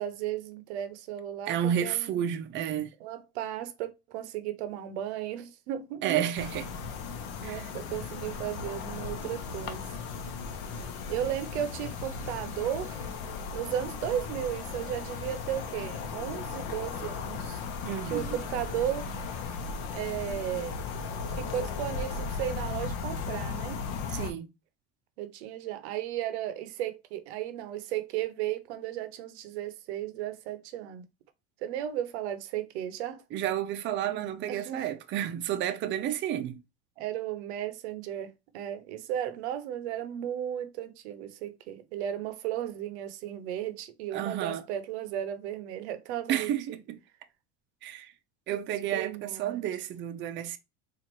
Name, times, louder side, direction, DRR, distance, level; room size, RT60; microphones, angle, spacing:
voice 1, 0.0-2.3 3.0-6.2 7.4-9.9 11.1-13.0 13.5-17.6 18.0-19.1 19.9-20.8 21.3-23.8 25.2-31.0 31.6-33.2 34.5-34.8 37.0-46.5 48.9-49.6, right 11 dB, 90° right, 0.7 m, -35 dB
voice 2, 1.5-2.9 6.0-6.6 7.4-7.7 17.8-18.4 24.1-24.5 33.3-36.6 44.1-44.6 46.3-47.0 47.8-48.1 48.5-50.6, right 10 dB, 35° right, 0.5 m, -31 dB
sound 1, 6.4-24.3, left 5 dB, 65° left, 0.8 m, -36 dB
sound 2, 8.4-19.6, left 2 dB, 25° left, 0.9 m, -54 dB
4.1 x 2.5 x 2.9 m
supercardioid pair, 125°, 33 cm